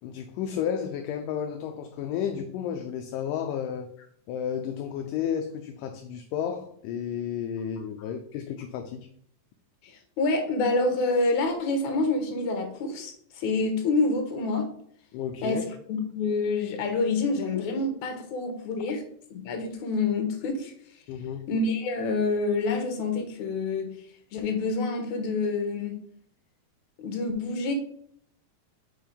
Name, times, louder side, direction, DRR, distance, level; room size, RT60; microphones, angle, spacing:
voice 1, 0.0-3.9 4.3-9.1 15.1-15.6 21.1-21.5, left 8 dB, 80° left, 6 dB, 2.0 m, -32 dB
voice 2, 9.8-14.7 15.4-19.0 19.3-20.7 21.5-23.9 24.3-26.0 27.0-27.7, left 3 dB, 65° left, 5 dB, 2.3 m, -27 dB
5.4 x 4.5 x 5.1 m, 0.64 s
omnidirectional pair, 4.0 m